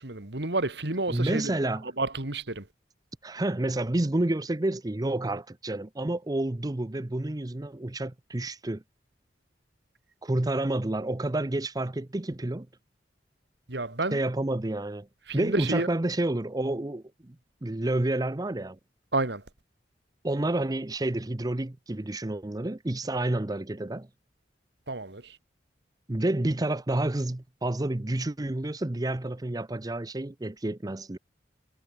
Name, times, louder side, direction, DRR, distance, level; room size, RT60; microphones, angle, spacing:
voice 1, 0.0-1.5 1.8-2.7 13.7-14.2 15.3-15.9 19.1-19.4 24.9-25.4, right 2 dB, 65° right, 2.3 m, -30 dB
voice 2, 1.1-1.9 3.2-8.8 10.2-12.7 14.1-15.1 15.3-17.3 17.6-18.8 20.2-24.1 26.1-31.2, right 1 dB, 20° right, 0.7 m, -29 dB
head